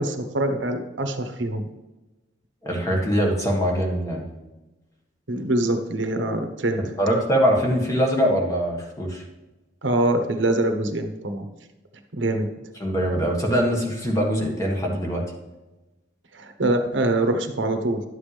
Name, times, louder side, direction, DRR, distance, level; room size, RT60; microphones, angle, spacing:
voice 1, 0.0-1.7 5.3-6.8 9.8-11.5 12.1-12.5 16.3-18.0, right 1 dB, 80° right, 6 dB, 1.0 m, -24 dB
voice 2, 2.6-4.2 7.0-9.2 12.8-15.2, equal, 15° left, -1 dB, 1.6 m, -22 dB
11.0 x 7.6 x 3.4 m, 1.1 s
head